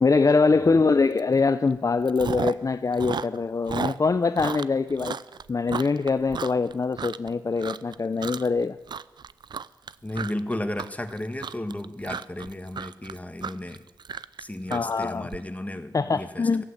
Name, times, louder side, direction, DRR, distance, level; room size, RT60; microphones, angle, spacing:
voice 1, 0.0-5.2 5.5-8.8 14.7-15.3 15.9-16.6, left 4 dB, 45° left, 11 dB, 0.6 m, -23 dB
Chewing mastication, 1.2-1.4 1.7-2.7 2.9-7.3 7.6-8.0 8.2-8.6 8.9-15.4, right 6 dB, 70° right, 0.5 m, -34 dB
voice 2, 10.0-13.8 14.4-16.6, left 1 dB, 20° left, 8 dB, 1.7 m, -34 dB
15.5 x 8.2 x 9.9 m, 1.1 s
cardioid pair, 40°, 8 cm